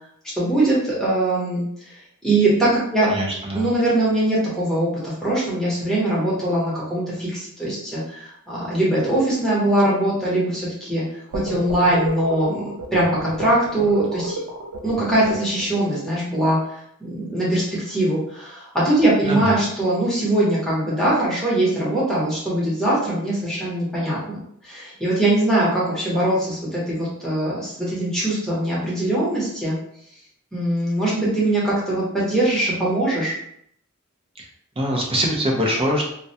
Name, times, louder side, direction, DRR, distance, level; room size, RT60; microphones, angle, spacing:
voice 1, 0.3-1.6 2.2-3.1 3.5-11.0 11.3-14.4 14.8-24.4 24.6-29.7 30.5-33.4, right 1 dB, ahead, -7 dB, 0.9 m, -22 dB
voice 2, 3.0-3.6 19.2-19.5 34.4-34.5 34.8-36.0, equal, 25° right, -1 dB, 0.6 m, -23 dB
sound 1, 11.3-15.8, right 1 dB, 85° right, 0.4 m, -30 dB
2.3 x 2.1 x 2.7 m, 0.70 s
head